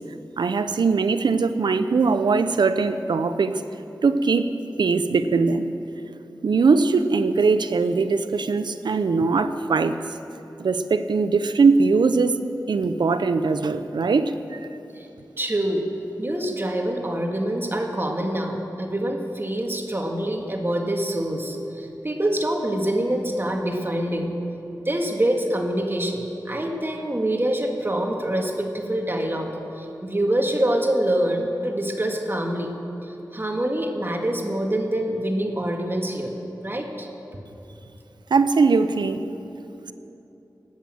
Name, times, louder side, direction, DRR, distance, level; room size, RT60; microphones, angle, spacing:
voice 1, 0.4-3.6 4.0-4.5 4.8-5.7 6.4-10.0 10.6-12.3 12.7-14.6 38.3-39.2, right 4 dB, 90° right, 10 dB, 0.6 m, -21 dB
voice 2, 15.4-15.9 16.2-24.3 24.9-29.5 29.8-32.7 33.0-36.3 36.6-37.1, right 1 dB, 30° right, 2 dB, 2.0 m, -25 dB
18.5 x 8.4 x 7.7 m, 2.9 s
cardioid pair, 45°, 7 cm